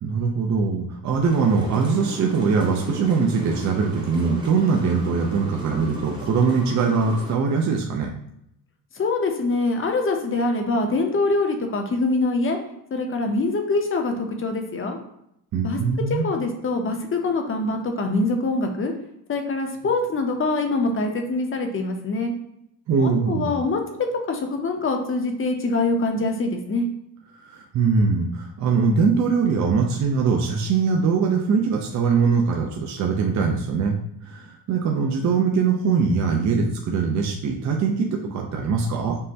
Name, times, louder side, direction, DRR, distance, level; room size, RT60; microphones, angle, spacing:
voice 1, 0.0-8.1 15.5-16.3 22.9-23.5 27.4-34.0 34.2-39.2, right 5 dB, 45° right, 0 dB, 0.5 m, -22 dB
sound 1, 1.1-7.4, right 1 dB, 10° right, 0.8 m, -36 dB
voice 2, 8.9-12.6 12.9-15.0 15.6-15.8 16.1-18.9 19.3-22.3 23.0-23.8 24.3-26.9, left 3 dB, 35° left, 4 dB, 0.6 m, -24 dB
5.4 x 2.1 x 2.7 m, 0.77 s
cardioid pair, 110°, 39 cm